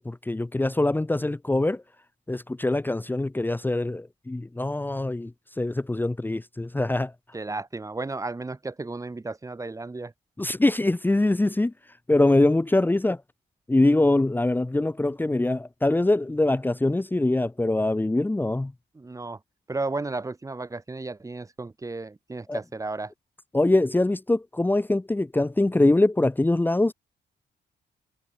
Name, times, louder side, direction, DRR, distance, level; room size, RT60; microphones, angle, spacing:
voice 1, 0.0-1.8 2.3-5.3 5.6-7.1 10.4-11.7 12.1-13.2 13.7-18.7 22.5-22.6 23.5-26.9, left 2 dB, 10° left, 1.2 m, -23 dB
voice 2, 7.3-10.1 18.9-19.4 19.7-23.1, right 3 dB, 20° right, 1.5 m, -33 dB
cardioid pair, 110°, 17 cm